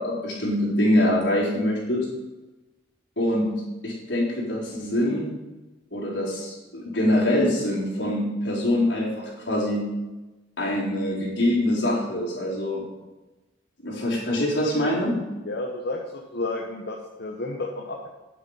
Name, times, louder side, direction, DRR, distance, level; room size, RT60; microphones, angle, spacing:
voice 1, 0.0-2.1 3.2-3.5 3.8-5.3 5.9-9.8 10.6-12.8 13.8-15.2, left 1 dB, 80° left, -5 dB, 4.0 m, -24 dB
voice 2, 15.4-18.1, left 2 dB, 60° left, 0 dB, 1.1 m, -31 dB
9.6 x 8.3 x 5.6 m, 1.1 s
head